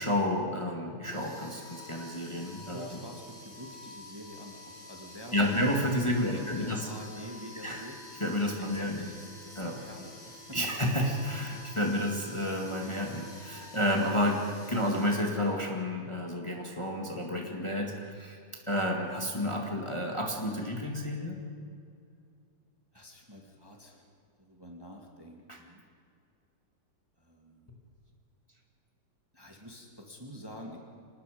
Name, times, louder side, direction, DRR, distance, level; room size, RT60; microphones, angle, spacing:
voice 1, 0.0-3.0 5.3-6.9 7.6-7.8 8.2-9.1 9.6-9.8 10.5-18.4 18.7-21.4 25.5-25.6, left 1 dB, 15° left, 0 dB, 2.0 m, -30 dB
sound 1, 1.0-15.9, left 1 dB, 35° left, 4.2 m, -49 dB
voice 2, 2.7-8.0 8.5-10.6 11.5-11.7 22.9-24.1 24.4-25.8 27.2-27.7 29.3-30.8, equal, 15° right, 1 dB, 2.0 m, -47 dB
26.5 x 19.0 x 5.2 m, 2.4 s
omnidirectional pair, 2.0 m